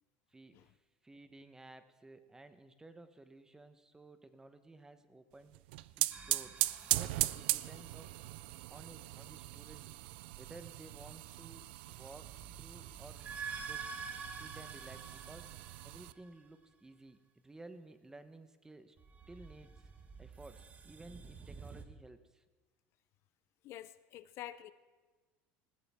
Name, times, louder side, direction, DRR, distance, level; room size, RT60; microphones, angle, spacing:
voice 1, 0.3-5.5 6.0-8.1 8.7-9.9 10.4-13.3 13.6-14.0 14.2-15.5 15.8-19.0 19.3-19.9 20.2-22.4, right 2 dB, 10° right, 10 dB, 1.0 m, -55 dB
sound 1, 5.5-16.1, right 18 dB, 85° right, 0.4 m, -39 dB
sound 2, 6.1-8.1 12.0-16.5 19.0-21.8, right 5 dB, 30° right, 1.4 m, -48 dB
voice 2, 23.6-24.7, left 13 dB, 55° left, 14 dB, 0.6 m, -47 dB
19.5 x 15.5 x 3.6 m, 1.3 s
supercardioid pair, 120°, 5 cm